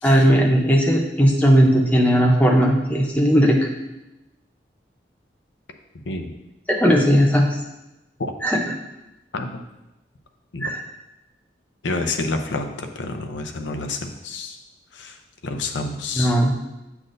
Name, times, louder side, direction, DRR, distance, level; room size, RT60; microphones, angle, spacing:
voice 1, 0.0-3.6 6.7-7.5 8.4-8.6 10.6-10.8 16.2-16.5, equal, 10° left, -1 dB, 0.7 m, -17 dB
voice 2, 11.8-14.6 14.9-16.3, left 3 dB, 85° left, 6 dB, 0.7 m, -29 dB
7.8 x 6.0 x 2.6 m, 0.96 s
head